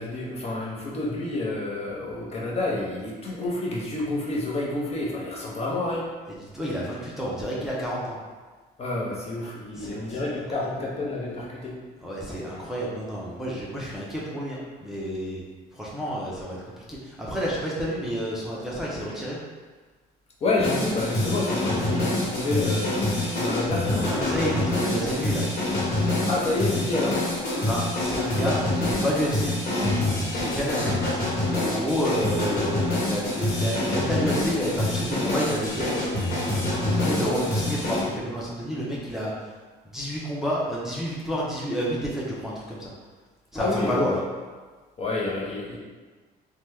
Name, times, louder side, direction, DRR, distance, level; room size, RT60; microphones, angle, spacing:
voice 1, 0.0-6.1 8.8-11.8 20.4-24.1 26.3-27.2 43.6-44.2 45.0-45.8, left 2 dB, 40° left, -4 dB, 0.7 m, -29 dB
voice 2, 6.3-8.2 9.7-10.2 10.6-10.7 12.0-15.4 15.7-19.4 24.1-25.5 26.9-27.1 27.6-29.5 30.3-31.0 31.5-36.0 36.8-39.3 39.9-42.9 43.5-44.1, equal, ahead, -6 dB, 0.6 m, -30 dB
sound 1, 20.6-38.0, left 2 dB, 60° left, 1.3 m, -26 dB
2.9 x 2.2 x 3.3 m, 1.4 s
cardioid pair, 110°, 17 cm